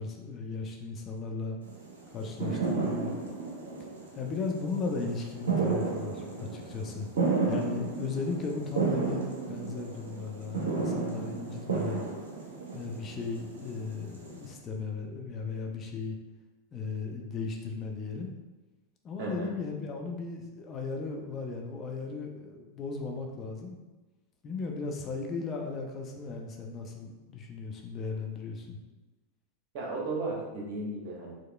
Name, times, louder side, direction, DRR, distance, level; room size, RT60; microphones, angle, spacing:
voice 1, 0.0-1.6 2.1-3.1 4.1-7.1 7.5-12.0 12.7-16.2 16.7-18.3 19.0-23.8 24.4-28.8, left 4 dB, 30° left, 1 dB, 0.5 m, -36 dB
sound 1, 1.6-14.5, right 4 dB, 70° right, 0.8 m, -33 dB
voice 2, 2.5-2.8 19.2-19.5 29.7-31.3, right 2 dB, 50° right, -2 dB, 1.1 m, -35 dB
4.7 x 2.9 x 2.2 m, 1.2 s
figure-of-eight pair, 90°, 0 cm